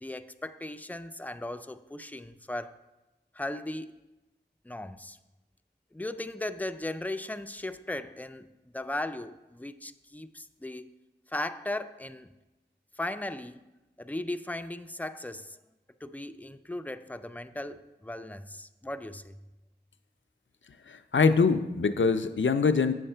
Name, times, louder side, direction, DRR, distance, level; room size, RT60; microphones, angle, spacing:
voice 1, 0.0-2.8 3.3-3.9 4.6-5.2 5.9-10.9 11.3-12.3 13.0-13.7 14.0-15.6 16.0-19.5, left 1 dB, 10° left, 11 dB, 0.4 m, -37 dB
voice 2, 20.9-22.9, left 5 dB, 80° left, 10 dB, 0.5 m, -24 dB
8.0 x 6.4 x 4.4 m, 1.0 s
wide cardioid pair, 40°, 19 cm